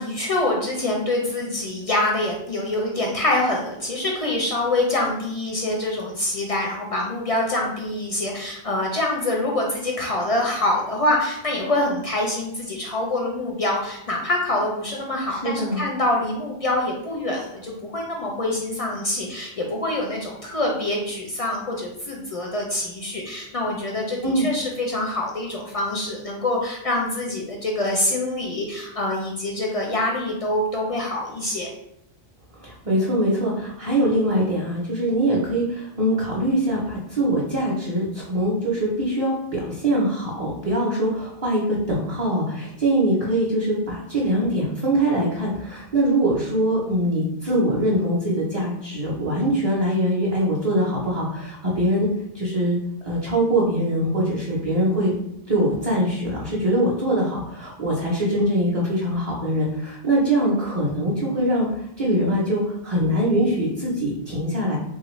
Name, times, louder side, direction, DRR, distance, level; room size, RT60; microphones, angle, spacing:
voice 1, 0.0-31.7, left 1 dB, 50° left, -1 dB, 0.4 m, -25 dB
voice 2, 15.3-15.8 24.2-24.5 32.6-52.1 52.3-52.8 53.0-55.1 55.5-61.7 62.0-64.8, right 1 dB, 40° right, -5 dB, 0.6 m, -23 dB
3.2 x 2.4 x 3.0 m, 0.79 s
omnidirectional pair, 1.1 m